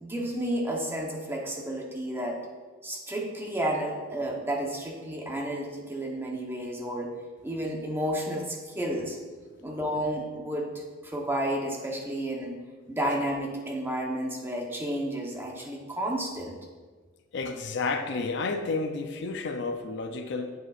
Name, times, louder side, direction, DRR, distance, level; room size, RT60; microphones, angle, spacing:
voice 1, 0.0-2.4 2.8-7.1 7.4-9.2 9.6-12.6 12.9-16.5, right 1 dB, 10° right, -1 dB, 1.0 m, -31 dB
voice 2, 17.3-20.5, left 3 dB, 65° left, 7 dB, 0.5 m, -31 dB
8.1 x 7.6 x 2.5 m, 1.4 s
head